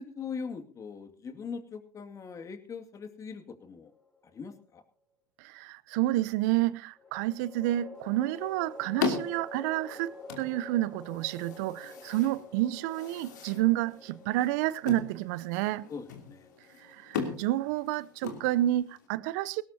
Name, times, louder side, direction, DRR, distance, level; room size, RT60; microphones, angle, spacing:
voice 1, 0.0-3.9 4.2-4.8 15.9-16.5, left 5 dB, 35° left, 2.3 m, -41 dB
sound 1, 3.9-4.7 7.0-18.3, left 1 dB, 15° left, 3.5 m, -48 dB
voice 2, 5.4-15.9 16.8-19.6, right 15 dB, 65° right, 0.7 m, -30 dB
sound 2, 8.0-19.1, left 5 dB, 80° left, 2.8 m, -39 dB
19.0 x 17.5 x 2.8 m
hypercardioid pair, 80°, 10 cm